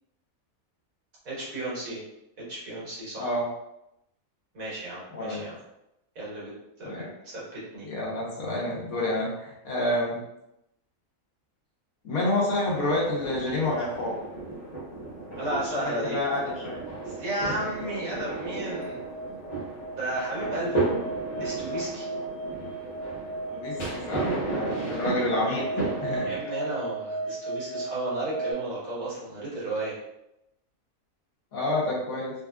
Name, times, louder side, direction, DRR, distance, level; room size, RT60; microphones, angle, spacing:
voice 1, 1.3-2.0 2.5-3.3 4.5-5.6 6.2-6.5 6.8-6.9 7.2-7.9 15.4-16.2 17.1-19.0 19.9-20.8 21.4-22.1 26.2-30.0, right 1 dB, 80° right, -7 dB, 1.8 m, -33 dB
voice 2, 7.8-10.2 12.0-14.1 15.8-16.8 23.5-25.6 26.0-26.3 31.5-32.3, left 1 dB, 85° left, -4 dB, 1.5 m, -28 dB
sound 1, 12.6-26.4, right 2 dB, 35° left, 0.8 m, -34 dB
sound 2, 15.2-28.5, right 2 dB, 70° left, 1.1 m, -36 dB
4.0 x 2.4 x 2.3 m, 0.87 s
omnidirectional pair, 1.4 m